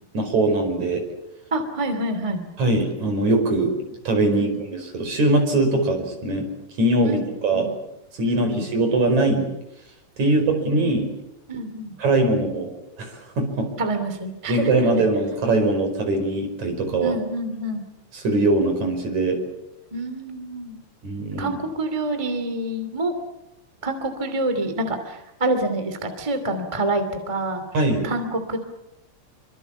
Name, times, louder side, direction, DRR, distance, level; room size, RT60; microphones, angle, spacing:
voice 1, 0.1-1.0 2.6-3.7 4.0-6.5 6.8-7.7 8.2-9.4 10.2-11.1 12.0-12.7 13.0-13.7 14.5-17.2 18.1-19.4 21.0-21.6 27.7-28.1, right 2 dB, 55° right, 5 dB, 6.3 m, -21 dB
voice 2, 1.5-2.4 4.4-4.6 7.0-7.7 8.2-8.6 10.2-10.7 11.5-11.9 13.8-15.0 17.0-17.8 19.9-20.8 21.4-23.1 23.8-27.6 28.0-28.6, right 1 dB, 10° right, 8 dB, 2.3 m, -27 dB
27.0 x 24.5 x 7.2 m, 0.88 s
omnidirectional pair, 3.8 m